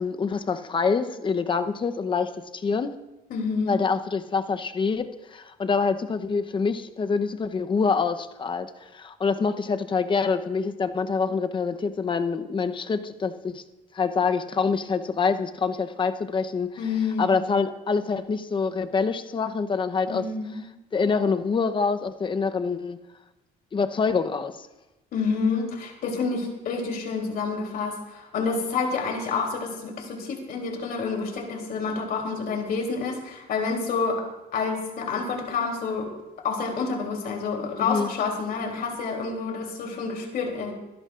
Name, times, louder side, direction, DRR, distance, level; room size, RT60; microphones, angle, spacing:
voice 1, 0.0-2.9 3.7-13.6 13.9-16.8 17.2-20.2 20.9-23.0 23.7-24.7 37.8-38.1, left 5 dB, 30° left, 8 dB, 0.8 m, -26 dB
voice 2, 3.3-3.7 16.8-17.3 20.1-20.6 25.1-36.1 36.4-40.7, left 4 dB, 60° left, 2 dB, 3.2 m, -28 dB
25.0 x 11.5 x 2.5 m, 1.0 s
cardioid pair, 110°, 17 cm